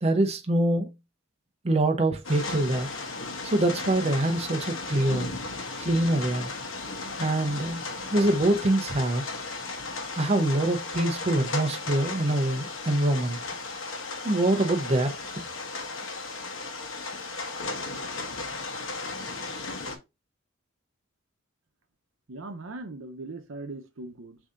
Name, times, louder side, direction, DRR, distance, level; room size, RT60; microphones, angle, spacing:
voice 1, 0.0-0.9 1.6-2.9 3.4-5.3 5.8-6.5 7.2-7.8 8.1-9.2 10.2-13.4 14.2-15.1, right 1 dB, 30° right, 0.6 m, -24 dB
sound 1, 2.2-20.0, left 3 dB, 80° left, 1.0 m, -35 dB
voice 2, 22.3-24.4, right 2 dB, 80° right, 0.7 m, -39 dB
6.9 x 2.8 x 2.5 m
head